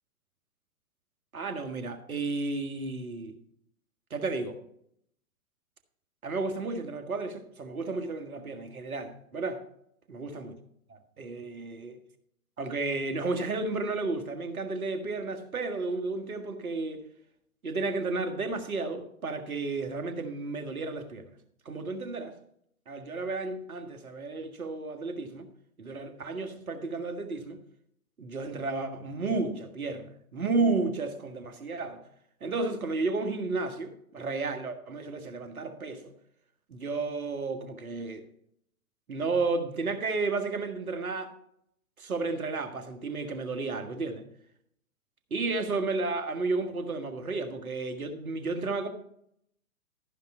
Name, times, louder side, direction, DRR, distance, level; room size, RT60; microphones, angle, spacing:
voice 1, 1.3-3.4 4.1-4.6 6.2-9.6 10.1-10.6 10.9-12.0 12.6-17.0 17.6-21.3 21.7-22.4 22.9-25.5 25.8-27.6 28.2-32.0 32.4-36.1 36.7-38.3 39.1-41.3 42.0-44.2 45.3-48.9, right 3 dB, 80° right, 1.8 m, -32 dB
14.0 x 5.6 x 4.5 m
figure-of-eight pair, 120°, 43 cm